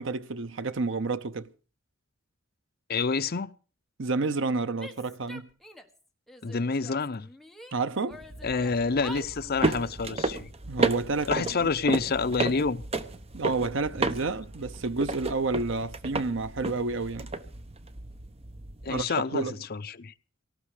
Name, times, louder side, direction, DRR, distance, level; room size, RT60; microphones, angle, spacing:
voice 1, 0.0-1.5 4.0-5.5 7.7-8.2 10.7-11.7 13.3-17.3 18.9-19.5, right 3 dB, 65° right, 0.8 m, -30 dB
voice 2, 2.9-3.5 6.4-7.3 8.4-10.5 11.3-12.8 18.8-20.1, left 4 dB, 50° left, 0.7 m, -28 dB
Female speech woman speaking / Yell, 4.8-6.0 6.3-7.7 8.1-9.9, equal, ahead, 1.4 m, -46 dB
sound 1, 8.1-19.0, right 2 dB, 30° right, 0.9 m, -33 dB
18.0 x 14.0 x 4.9 m
head